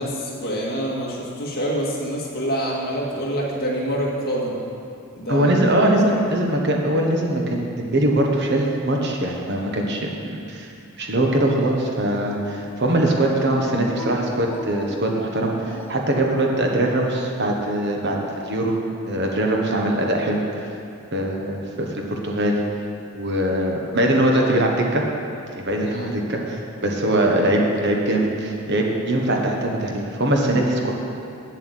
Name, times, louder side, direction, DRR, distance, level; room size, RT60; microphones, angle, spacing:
voice 1, 0.0-4.6 5.1-6.2 13.5-13.7 25.9-26.2, equal, 45° left, -4 dB, 2.1 m, -27 dB
voice 2, 5.3-10.7 11.0-18.2 18.5-18.8 19.1-20.7 21.1-22.6 23.1-25.0 25.6-30.9, right 1 dB, 50° right, 0 dB, 1.3 m, -22 dB
Dog, 11.5-13.0 13.8-16.2, left 1 dB, 10° left, 0.6 m, -39 dB
8.1 x 7.5 x 8.3 m, 2.5 s
head